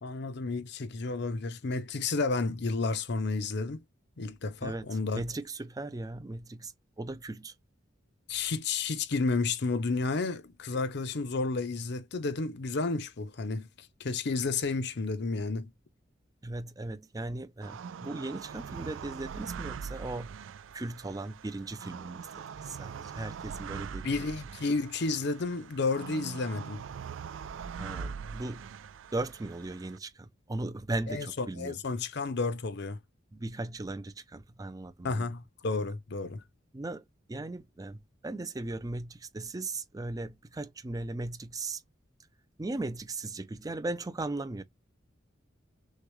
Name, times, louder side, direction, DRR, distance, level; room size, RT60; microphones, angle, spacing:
voice 1, 0.0-3.8 4.2-5.2 8.3-15.7 24.0-26.8 31.1-33.0 35.0-36.4, left 3 dB, 60° left, 0.6 m, -31 dB
voice 2, 5.1-6.7 7.0-7.5 16.4-20.3 20.7-24.2 27.8-28.6 29.1-31.8 33.3-35.3 36.7-37.0 37.3-38.0 38.2-41.8 42.6-44.6, right 2 dB, 20° right, 0.5 m, -37 dB
sound 1, 17.6-30.0, right 6 dB, 80° right, 0.4 m, -42 dB
6.4 x 2.3 x 3.1 m
head